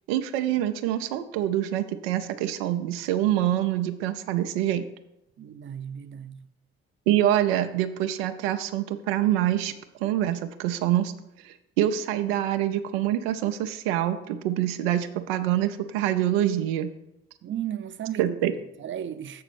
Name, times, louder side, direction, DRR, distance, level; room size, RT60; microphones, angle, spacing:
voice 1, 0.1-4.9 7.1-9.7 10.0-11.1 11.4-16.9 18.2-18.5, right 12 dB, 90° right, 0.5 m, -25 dB
voice 2, 5.4-6.5 17.4-19.4, right 10 dB, 40° right, 0.6 m, -35 dB
7.7 x 4.0 x 6.2 m
hypercardioid pair, 55°, 29 cm